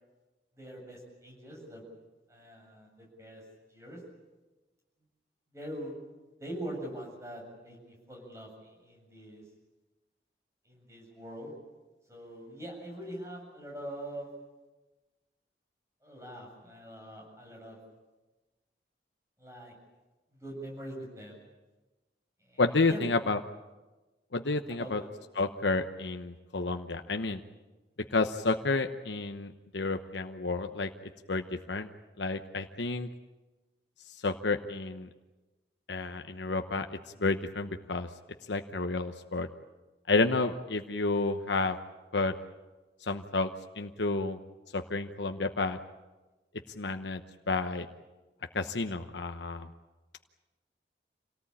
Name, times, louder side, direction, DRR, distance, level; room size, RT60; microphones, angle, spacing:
voice 1, 0.6-1.8 2.3-3.4 3.7-4.0 5.5-5.9 6.4-9.4 10.7-11.5 12.1-14.3 16.0-17.8 19.4-19.7 20.4-21.4 22.4-23.0 24.7-25.1, right 1 dB, 15° right, -1 dB, 7.7 m, -43 dB
voice 2, 22.6-23.4 24.3-25.0 25.4-27.4 28.1-30.9 31.3-31.9 32.2-33.1 34.1-35.1 35.9-38.1 38.5-39.5 40.1-41.8 42.1-42.3 43.0-43.5 43.8-44.4 44.7-45.8 46.7-47.2 47.5-47.9 48.5-49.7, left 3 dB, 90° left, 6 dB, 1.0 m, -30 dB
27.5 x 18.5 x 8.8 m, 1.2 s
head